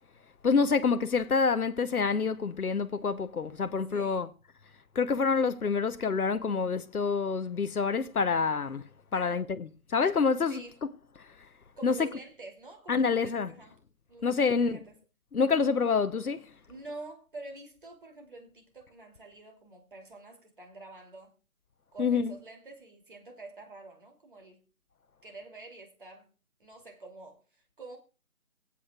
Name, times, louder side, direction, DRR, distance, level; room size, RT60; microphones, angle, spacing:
voice 1, 0.4-4.3 4.9-10.6 11.2-11.3 11.8-12.1 12.9-13.5 14.2-14.8 15.3-16.5 22.0-22.3, left 5 dB, 90° left, 1.0 m, -27 dB
voice 2, 3.9-4.3 9.1-9.5 10.5-10.7 11.8-13.8 14.1-15.0 16.7-21.3 21.9-24.6 25.2-26.3 26.6-28.0, right 2 dB, 35° right, 2.9 m, -47 dB
22.5 x 8.6 x 2.4 m
figure-of-eight pair, 170°, 43 cm